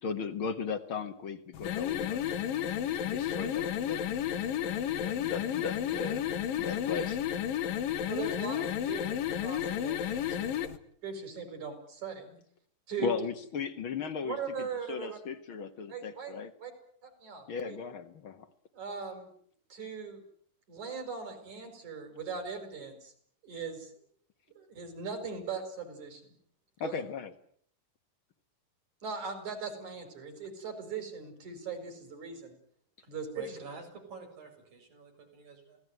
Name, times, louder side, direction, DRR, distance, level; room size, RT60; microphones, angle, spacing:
voice 1, 0.0-2.2 3.0-4.0 5.0-6.3 6.5-7.2 13.0-16.5 17.5-18.5 26.8-27.3, left 6 dB, 50° left, 9 dB, 1.7 m, -37 dB
sound 1, 1.5-10.8, left 10 dB, 85° left, 3.3 m, -32 dB
voice 2, 8.1-10.6 11.0-12.4 12.9-13.1 14.2-15.2 15.9-16.3 16.6-16.7 17.0-17.8 18.7-19.3 19.7-20.2 20.7-23.1 23.4-23.9 24.6-26.3 26.8-27.0 29.0-32.6 33.1-33.6, right 5 dB, 55° right, 7 dB, 7.5 m, -39 dB
voice 3, 33.3-35.8, right 3 dB, 80° right, 3 dB, 8.2 m, -48 dB
27.5 x 18.5 x 9.3 m, 0.62 s
omnidirectional pair, 3.9 m